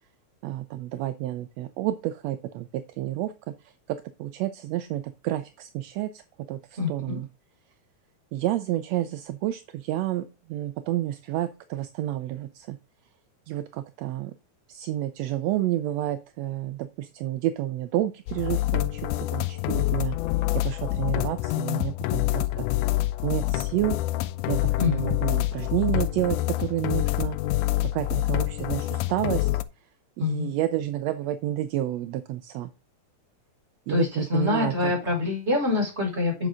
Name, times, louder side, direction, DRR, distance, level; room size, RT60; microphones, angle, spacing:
voice 1, 0.4-6.2 6.5-7.3 8.3-12.8 13.5-14.3 14.7-20.2 20.6-22.7 23.2-24.0 24.5-27.4 27.9-29.6 30.2-32.7 33.9-34.9, right 13 dB, 75° right, 12 dB, 1.6 m, -30 dB
voice 2, 6.8-7.2 24.8-25.0 30.2-30.5 33.9-36.5, left 3 dB, 20° right, -3 dB, 5.7 m, -25 dB
sound 1, 18.3-29.6, left 17 dB, 85° left, 2.1 m, -26 dB
9.2 x 6.4 x 3.6 m, 0.30 s
omnidirectional pair, 3.5 m